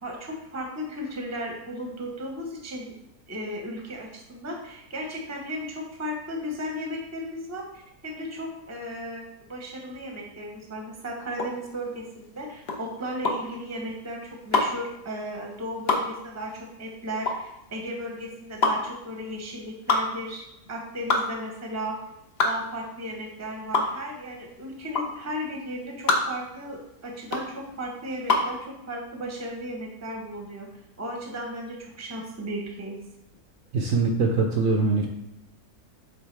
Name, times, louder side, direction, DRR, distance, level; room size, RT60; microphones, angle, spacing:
voice 1, 0.0-2.9 3.3-22.0 22.4-30.7 31.0-33.0, equal, 15° right, 1 dB, 0.8 m, -35 dB
sound 1, 11.3-28.6, left 3 dB, 45° left, 0.9 m, -27 dB
voice 2, 33.7-35.1, right 4 dB, 65° right, 2 dB, 0.9 m, -22 dB
7.9 x 3.8 x 3.3 m, 0.87 s
omnidirectional pair, 1.7 m